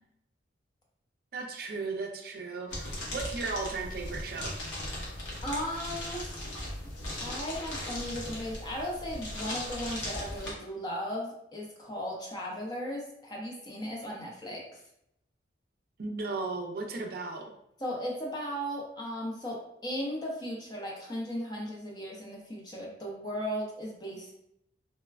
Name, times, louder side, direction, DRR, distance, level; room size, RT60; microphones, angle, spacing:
voice 1, 1.3-4.5 16.0-17.5, right 3 dB, 50° right, 3 dB, 0.4 m, -36 dB
sound 1, 2.7-10.5, left 1 dB, 90° left, 0.9 m, -38 dB
voice 2, 5.4-6.4 7.2-14.8 17.8-24.3, equal, 20° left, -2 dB, 0.5 m, -36 dB
3.2 x 2.1 x 2.3 m, 0.79 s
head